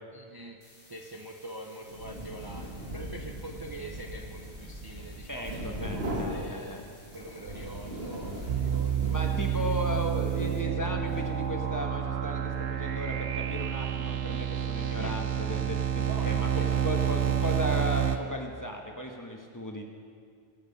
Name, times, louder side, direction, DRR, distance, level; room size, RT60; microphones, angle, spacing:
voice 1, 0.1-0.6 0.9-9.8 15.0-15.2 16.1-16.8, right 1 dB, 25° right, 1 dB, 0.7 m, -44 dB
sound 1, 0.6-10.6, left 2 dB, 80° left, 2.8 m, -57 dB
sound 2, 1.9-11.8, equal, 65° right, 2.2 m, -39 dB
voice 2, 5.3-6.9 9.1-19.8, equal, 15° left, 2 dB, 1.3 m, -36 dB
sound 3, 8.5-18.2, right 9 dB, 80° right, 1.1 m, -29 dB
21.5 x 8.0 x 5.3 m, 2.1 s
omnidirectional pair, 1.1 m